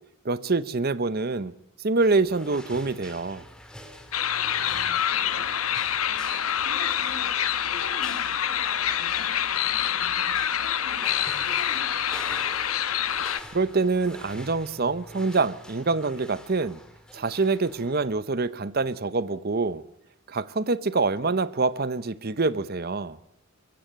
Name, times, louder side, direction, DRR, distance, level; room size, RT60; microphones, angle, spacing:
voice 1, 0.2-1.5 1.8-3.4 13.5-16.8 17.1-19.8 20.3-23.2, right 3 dB, 45° right, 0.8 m, -25 dB
sound 1, 2.0-18.1, left 1 dB, 5° left, 2.4 m, -46 dB
sound 2, 4.1-13.4, left 9 dB, 80° left, 1.1 m, -26 dB
voice 2, 4.5-12.4, left 1 dB, 50° left, 6.3 m, -45 dB
22.5 x 15.5 x 9.1 m
head